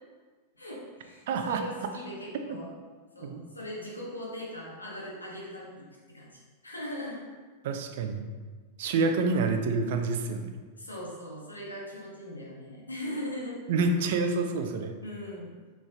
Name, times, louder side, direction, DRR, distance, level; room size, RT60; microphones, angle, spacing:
voice 1, 0.5-2.7 3.1-7.2 8.8-9.1 10.8-13.6 15.0-15.5, equal, 80° left, -4 dB, 1.7 m, -40 dB
voice 2, 1.3-1.6 2.5-2.6 3.2-3.4 7.6-8.2 8.8-10.6 13.7-14.9, right 3 dB, 55° right, 6 dB, 0.6 m, -28 dB
6.3 x 4.7 x 3.8 m, 1.4 s
figure-of-eight pair, 90°, 0 cm